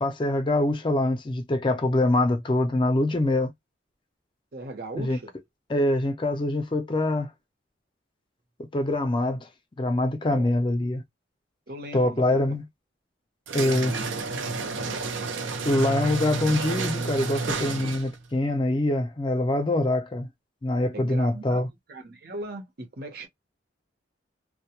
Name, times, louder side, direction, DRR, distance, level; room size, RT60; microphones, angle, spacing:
voice 1, 0.0-3.5 5.0-5.2 5.7-7.3 8.7-9.5 9.8-11.0 11.9-12.6 13.5-13.9 15.6-20.3 20.6-21.7, left 1 dB, 25° left, 0.4 m, -24 dB
voice 2, 4.5-5.3 9.3-9.4 10.3-10.5 11.7-12.3 13.6-14.2 14.6-15.1 17.6-17.7 20.9-23.3, right 2 dB, 55° right, 0.8 m, -39 dB
sound 1, 13.5-18.2, right 4 dB, 90° right, 0.5 m, -30 dB
2.1 x 2.1 x 2.8 m
head